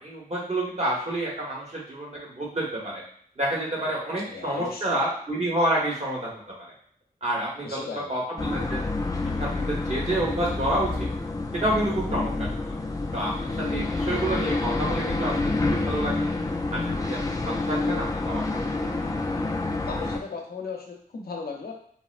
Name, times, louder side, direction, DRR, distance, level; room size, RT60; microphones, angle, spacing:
voice 1, 0.0-3.0 3.4-6.4 7.2-8.8 9.4-11.1 11.5-12.8 13.1-16.3 16.7-19.1, right 1 dB, 45° right, -4 dB, 1.0 m, -29 dB
voice 2, 4.2-5.0 7.6-8.1 13.6-14.1 19.9-21.7, left 4 dB, 85° left, 0 dB, 0.6 m, -36 dB
sound 1, 8.4-20.2, left 3 dB, 20° left, 0.3 m, -28 dB
3.6 x 2.0 x 2.4 m, 0.62 s
wide cardioid pair, 95°, 15 cm